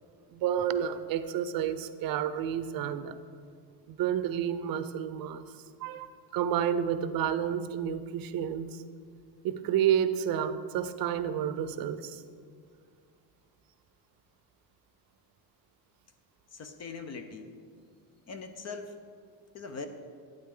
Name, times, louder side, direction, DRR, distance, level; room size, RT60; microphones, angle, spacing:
voice 1, 0.3-3.2 3.9-8.8 9.4-12.2, right 9 dB, 55° right, 12 dB, 0.6 m, -30 dB
voice 2, 16.5-17.5 18.3-18.9 19.5-19.9, left 4 dB, 40° left, 8 dB, 0.6 m, -41 dB
12.0 x 9.2 x 3.8 m, 2.2 s
cardioid pair, 170°, 43 cm